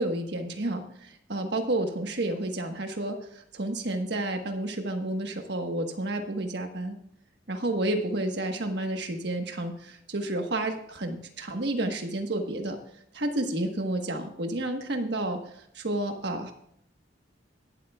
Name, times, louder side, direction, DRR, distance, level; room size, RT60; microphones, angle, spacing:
voice 1, 0.0-7.0 7.5-12.8 13.1-15.4 15.7-16.5, right 1 dB, 65° right, 4 dB, 1.4 m, -30 dB
18.0 x 12.0 x 2.4 m, 0.72 s
head